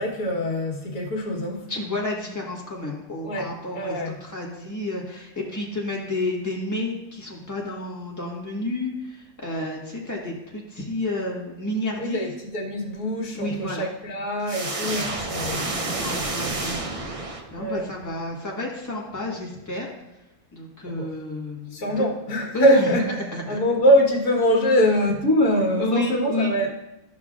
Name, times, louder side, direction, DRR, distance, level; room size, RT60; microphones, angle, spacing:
voice 1, 0.0-1.7 3.2-4.1 12.0-15.7 17.6-17.8 20.9-21.1 21.7-23.0 23.5-26.7, equal, 70° left, -1 dB, 1.8 m, -23 dB
voice 2, 1.7-12.3 13.3-13.9 16.0-16.8 17.5-19.9 20.5-22.1 22.5-23.6 25.8-26.6, left 2 dB, 10° left, -3 dB, 1.4 m, -30 dB
sound 1, 14.5-17.8, right 2 dB, 45° right, 0.4 m, -29 dB
13.5 x 5.9 x 2.4 m, 0.95 s
omnidirectional pair, 1.6 m